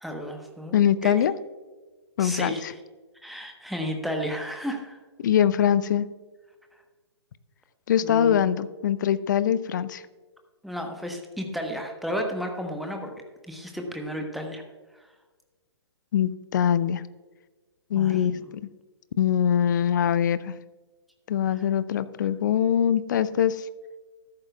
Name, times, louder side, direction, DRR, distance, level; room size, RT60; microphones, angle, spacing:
voice 1, 0.0-1.1 2.2-2.7 3.2-5.0 8.0-8.5 10.6-13.1 13.5-14.6 14.9-15.1 17.9-18.6 21.5-21.6, equal, ahead, 3 dB, 1.2 m, -33 dB
voice 2, 0.7-1.3 2.2-2.7 5.2-6.1 7.9-10.0 16.1-17.0 17.9-18.6 19.2-20.5 21.3-23.6, left 9 dB, 45° left, 16 dB, 0.5 m, -23 dB
13.5 x 11.5 x 2.4 m, 1.3 s
figure-of-eight pair, 125°, 14 cm